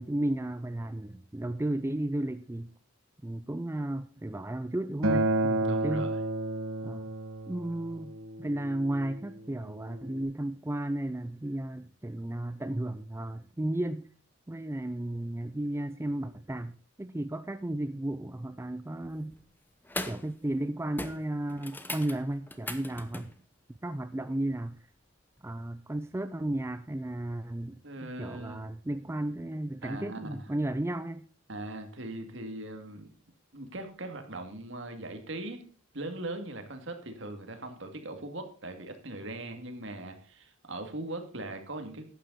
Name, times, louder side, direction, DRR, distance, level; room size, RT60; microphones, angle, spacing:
voice 1, 0.0-2.7 3.2-6.1 6.8-7.1 7.5-8.1 8.4-14.1 14.5-19.3 20.0-23.3 23.8-24.8 25.4-31.2, right 1 dB, 10° right, 11 dB, 0.4 m, -34 dB
Acoustic guitar, 5.0-10.2, right 2 dB, 80° right, 1.9 m, -31 dB
voice 2, 5.6-6.2 27.8-28.6 29.8-30.4 31.5-33.1 33.5-35.6 35.9-42.0, right 2 dB, 60° right, 6 dB, 2.2 m, -40 dB
sound 1, 19.1-19.4 19.8-20.3 20.6-20.7 21.0-23.4 25.4-25.5, left 2 dB, 10° left, 0.9 m, -39 dB
12.0 x 9.2 x 4.1 m, 0.41 s
head